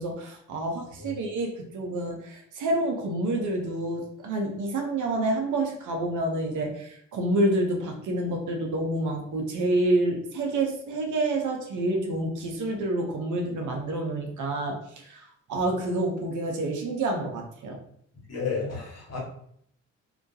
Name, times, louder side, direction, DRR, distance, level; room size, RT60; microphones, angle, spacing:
voice 1, 0.0-17.8, right 1 dB, 60° right, 2 dB, 0.7 m, -28 dB
voice 2, 18.3-19.2, left 5 dB, 45° left, -1 dB, 1.0 m, -32 dB
2.3 x 2.2 x 2.6 m, 0.67 s
hypercardioid pair, 50°, 34 cm